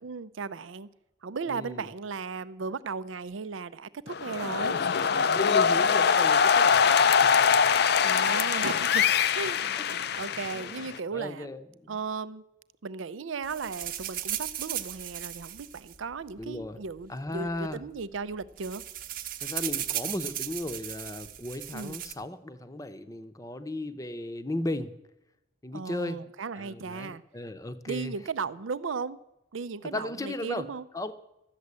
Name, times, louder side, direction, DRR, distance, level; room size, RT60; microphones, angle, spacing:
voice 1, 0.0-0.9 1.2-4.8 8.0-11.5 11.9-12.4 12.8-18.8 21.7-22.0 25.7-27.2 27.9-29.2 29.5-30.9, right 5 dB, 90° right, 15 dB, 0.5 m, -36 dB
voice 2, 1.5-1.9 5.3-7.1 7.6-7.7 10.5-10.8 11.1-12.0 16.4-16.8 17.1-17.8 19.4-24.9 25.6-26.2 26.6-28.1 29.8-30.7 30.9-31.1, left 1 dB, 20° left, 11 dB, 0.7 m, -36 dB
sound 1, 4.1-11.0, left 6 dB, 55° left, 0.5 m, -23 dB
sound 2, 13.4-16.7 17.5-17.6 17.8-18.0 18.3-22.1, right 11 dB, 45° right, 0.8 m, -36 dB
13.5 x 7.5 x 9.6 m, 0.92 s
head